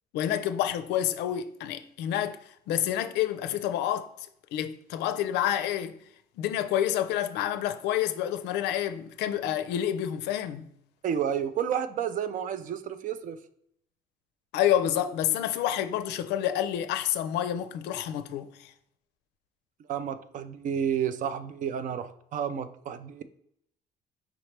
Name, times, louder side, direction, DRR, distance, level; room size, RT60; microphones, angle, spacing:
voice 1, 0.1-5.9 6.4-10.7 14.5-18.7, left 11 dB, 85° left, 0.4 m, -29 dB
voice 2, 11.0-13.4 19.9-23.2, right 8 dB, 50° right, 0.4 m, -31 dB
5.0 x 3.0 x 3.2 m
cardioid pair, 110°, 17 cm